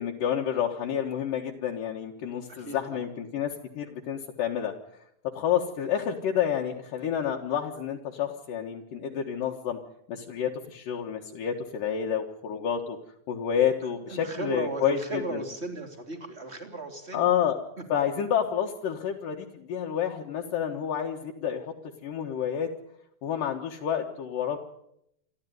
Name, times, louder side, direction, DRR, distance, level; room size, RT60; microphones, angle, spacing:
voice 1, 0.0-4.7 5.3-9.8 10.1-13.0 13.3-15.4 17.1-17.6 17.9-21.7 22.0-22.7 23.2-24.6, left 9 dB, 70° left, 0 dB, 3.0 m, -29 dB
voice 2, 2.5-3.0 13.5-13.7 14.1-17.3, right 2 dB, 20° right, 4 dB, 3.0 m, -36 dB
27.5 x 12.5 x 9.3 m, 0.77 s
omnidirectional pair, 4.1 m